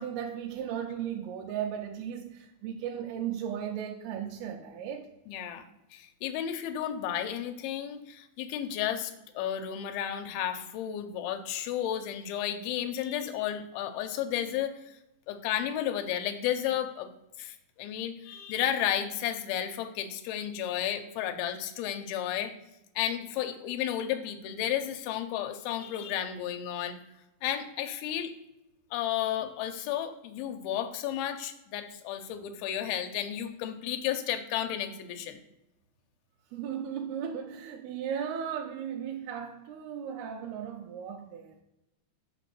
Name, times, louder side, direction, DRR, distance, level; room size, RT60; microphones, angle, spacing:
voice 1, 0.0-5.1 36.5-41.6, right 8 dB, 90° right, 2.5 m, -36 dB
voice 2, 5.3-5.7 5.9-14.9 15.3-17.1 17.4-22.5 23.0-27.0 27.4-28.3 28.9-35.4, left 10 dB, 80° left, 2.5 m, -32 dB
6.0 x 3.9 x 6.0 m
omnidirectional pair, 4.4 m